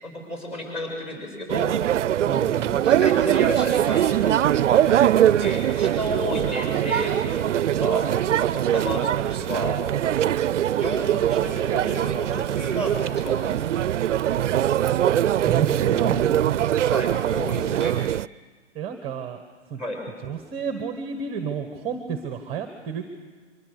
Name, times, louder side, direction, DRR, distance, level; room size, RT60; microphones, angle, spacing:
voice 1, 0.0-1.7 2.8-8.0 8.4-9.8 10.8-13.6 16.8-17.9 19.8-20.0, equal, 15° left, 1 dB, 6.4 m, -32 dB
sound 1, 1.5-18.3, right 11 dB, 75° right, 0.6 m, -22 dB
voice 2, 2.2-2.8 15.4-16.3 18.7-19.4 19.7-19.8 20.2-23.1, right 7 dB, 15° right, 7 dB, 1.1 m, -30 dB
23.5 x 23.5 x 6.6 m, 1.5 s
hypercardioid pair, 150°, 36 cm